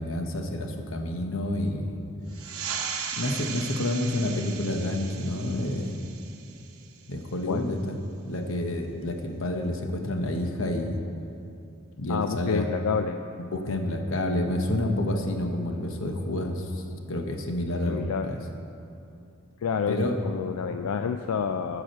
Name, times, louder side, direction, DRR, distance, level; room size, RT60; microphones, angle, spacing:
voice 1, 0.0-2.0 3.2-6.0 7.1-8.0 8.3-11.0 12.0-12.7 13.5-18.4 19.9-20.2, left 1 dB, 65° left, 4 dB, 1.0 m, -29 dB
sound 1, 2.3-7.4, right 7 dB, 80° right, 0.8 m, -37 dB
voice 2, 12.1-13.2 17.9-18.3 19.6-21.8, left 6 dB, 85° left, 7 dB, 0.4 m, -28 dB
13.0 x 4.9 x 6.5 m, 2.7 s
head